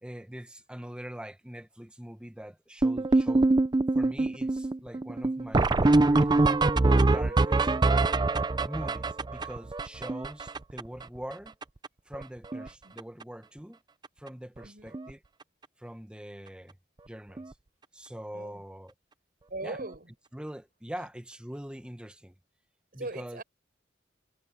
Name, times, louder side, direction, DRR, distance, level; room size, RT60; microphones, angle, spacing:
voice 1, 0.0-3.6 3.9-6.3 7.0-7.7 8.6-11.5 12.1-13.8 14.2-15.2 15.8-16.8 17.0-17.5 17.9-18.9 19.6-19.8 20.3-22.3 22.9-23.4, equal, 5° right, 1.0 m, -43 dB
sound 1, 2.8-11.0 11.3-11.4 11.6-11.9 12.1-12.7 13.0-13.2 14.0-14.1 14.6-14.7 14.9-15.1 17.4-17.5 19.8-19.9, right 2 dB, 20° right, 0.4 m, -24 dB
voice 2, 19.5-20.1 21.0-21.1 22.9-23.4, right 2 dB, 50° right, 5.9 m, -39 dB
head